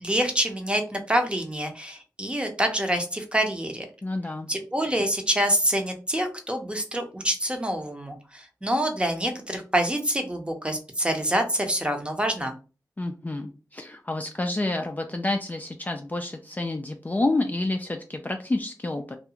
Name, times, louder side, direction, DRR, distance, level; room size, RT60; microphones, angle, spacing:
voice 1, 0.0-3.9 4.5-12.5, right 1 dB, 15° right, 5 dB, 0.7 m, -26 dB
voice 2, 4.0-4.5 13.0-19.2, left 2 dB, 25° left, 4 dB, 0.3 m, -29 dB
2.4 x 2.2 x 2.8 m, 0.34 s
wide cardioid pair, 50°, 7 cm